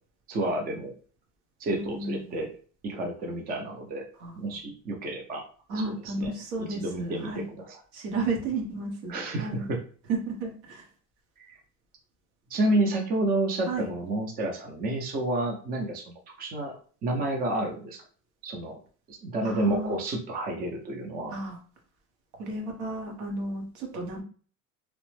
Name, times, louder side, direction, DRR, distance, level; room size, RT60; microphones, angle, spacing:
voice 1, 0.3-0.9 1.6-2.5 2.8-4.1 4.4-5.4 5.9-6.3 6.6-7.8 9.1-9.8 11.5-11.6 12.5-16.0 16.4-16.8 17.0-18.0 18.4-18.8 19.1-21.3, right 1 dB, 30° right, 2 dB, 0.5 m, -30 dB
voice 2, 1.7-2.4 4.2-4.6 5.7-7.5 7.9-9.7 10.1-10.9 13.7-13.9 19.4-19.9 21.3-21.6 22.4-24.2, right 3 dB, 85° right, 1 dB, 1.1 m, -33 dB
2.9 x 2.0 x 3.1 m, 0.42 s
cardioid pair, 165°, 31 cm